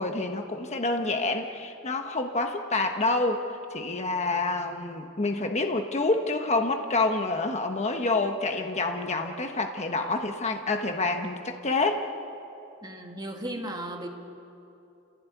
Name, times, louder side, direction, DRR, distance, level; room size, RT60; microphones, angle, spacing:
voice 1, 0.0-3.4 3.7-12.0, left 3 dB, 35° left, 4 dB, 1.2 m, -27 dB
voice 2, 12.8-14.1, right 1 dB, 20° right, 2 dB, 2.1 m, -35 dB
29.5 x 16.0 x 9.3 m, 2.8 s
head